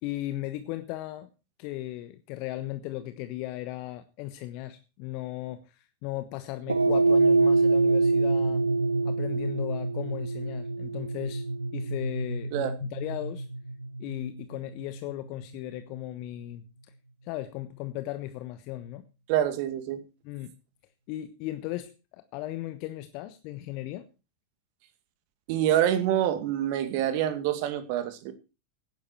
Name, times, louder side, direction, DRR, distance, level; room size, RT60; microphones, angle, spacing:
voice 1, 0.0-1.3 1.6-8.6 9.0-11.4 11.7-13.5 14.0-16.6 17.2-19.0 20.2-20.5 21.1-24.1, left 15 dB, 45° left, 10 dB, 1.2 m, -36 dB
sound 1, 6.7-15.1, right 3 dB, 75° right, 0.6 m, -26 dB
voice 2, 19.3-20.0 25.5-28.3, right 11 dB, 45° right, 10 dB, 2.3 m, -26 dB
17.0 x 10.5 x 4.5 m, 0.32 s
figure-of-eight pair, 90°, 0 cm